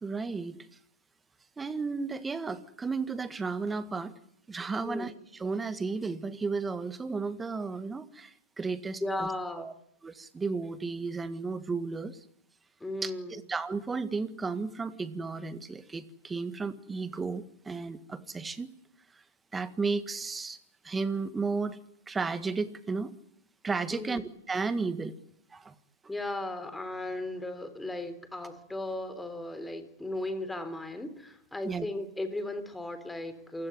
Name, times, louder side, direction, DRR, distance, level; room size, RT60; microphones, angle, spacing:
voice 1, 0.0-0.6 1.6-4.1 4.5-9.3 9.6-9.7 10.0-12.2 13.0-18.7 19.1-19.2 19.5-20.6 20.8-21.8 22.1-23.1 23.6-25.2 25.5-25.7 31.6-31.9, right 4 dB, 15° right, 13 dB, 1.8 m, -33 dB
voice 2, 9.0-9.7 12.8-13.3 23.9-24.2 26.1-33.7, left 2 dB, 5° left, 10 dB, 3.5 m, -36 dB
27.5 x 16.5 x 10.0 m, 0.73 s
hypercardioid pair, 115°, 0 cm